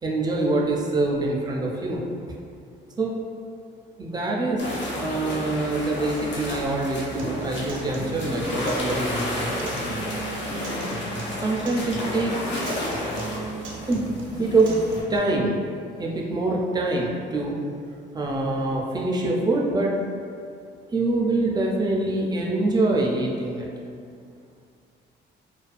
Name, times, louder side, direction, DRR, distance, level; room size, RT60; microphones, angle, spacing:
voice 1, 0.0-2.0 3.0-3.2 4.0-4.6 4.9-9.7 10.7-10.8 11.4-12.4 12.9-13.0 13.8-14.8 15.1-15.6 16.0-17.5 18.1-20.0 20.9-23.7, right 2 dB, 20° right, -1 dB, 0.4 m, -25 dB
sound 1, 4.6-15.0, left 1 dB, 65° left, 0.6 m, -31 dB
Acoustic guitar, 7.2-15.2, right 2 dB, 85° right, 0.5 m, -37 dB
2.4 x 2.2 x 2.4 m, 2.3 s
cardioid pair, 90°, 20 cm